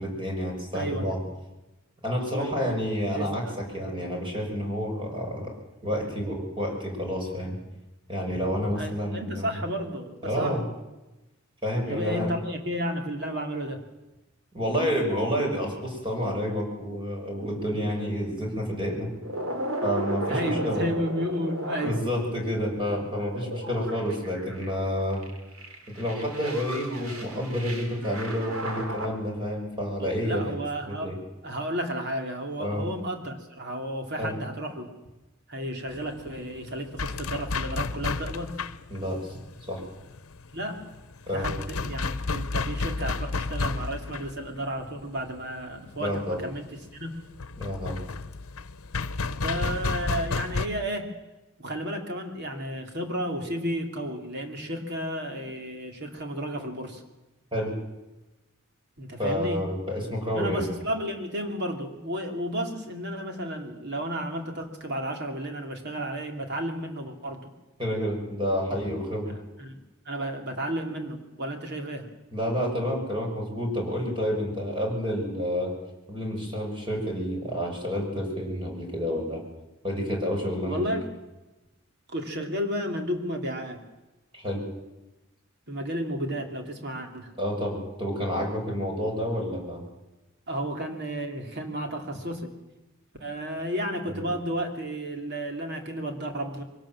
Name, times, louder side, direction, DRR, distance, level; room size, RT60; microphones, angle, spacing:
voice 1, 0.0-1.2 2.0-5.5 5.8-7.6 8.1-9.6 10.2-10.6 11.6-12.3 14.5-19.1 19.8-20.8 21.8-25.3 25.9-30.5 30.9-31.2 32.6-32.9 34.2-34.3 38.9-39.4 39.7-39.8 41.3-41.5 46.0-46.4 47.6-48.0 57.5-57.7 59.2-60.6 67.8-69.4 72.3-75.7 76.1-79.4 79.8-80.9 84.3-84.6 87.4-89.8 94.0-94.2, equal, 25° right, 0 dB, 6.2 m, -29 dB
voice 2, 0.7-1.3 2.3-2.6 3.1-3.6 8.7-10.6 11.9-13.8 20.3-22.0 30.0-31.1 31.4-34.9 35.5-38.6 40.5-40.8 41.3-46.7 46.9-47.1 49.4-51.1 51.6-57.0 59.0-59.7 60.3-67.5 69.3-69.8 70.0-72.1 80.7-81.0 82.1-83.8 85.7-87.3 90.5-92.5 93.2-96.6, equal, 55° right, 3 dB, 3.1 m, -32 dB
sound 1, 17.4-18.6 19.1-24.7 25.1-29.1, right 1 dB, 80° right, 3.4 m, -35 dB
sound 2, 35.9-50.7, left 4 dB, 85° left, 0.9 m, -32 dB
23.0 x 17.5 x 7.6 m, 1.0 s
head